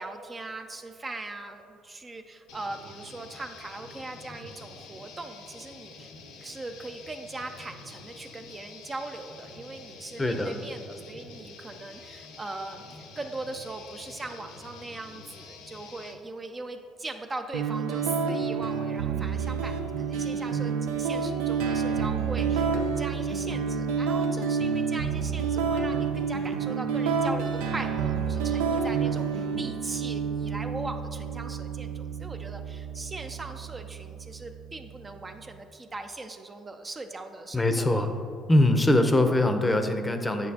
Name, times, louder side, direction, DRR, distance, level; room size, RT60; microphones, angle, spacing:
voice 1, 0.0-6.1 6.4-38.1, right 2 dB, 30° right, 5 dB, 0.5 m, -40 dB
sound 1, 2.5-16.2, left 4 dB, 80° left, 0.8 m, -47 dB
voice 2, 10.2-10.6 37.5-38.1 38.5-40.5, left 1 dB, 15° left, 7 dB, 0.6 m, -22 dB
sound 2, 17.5-35.5, right 6 dB, 85° right, 0.4 m, -29 dB
8.4 x 6.3 x 2.8 m, 2.5 s
supercardioid pair, 65°, 0 cm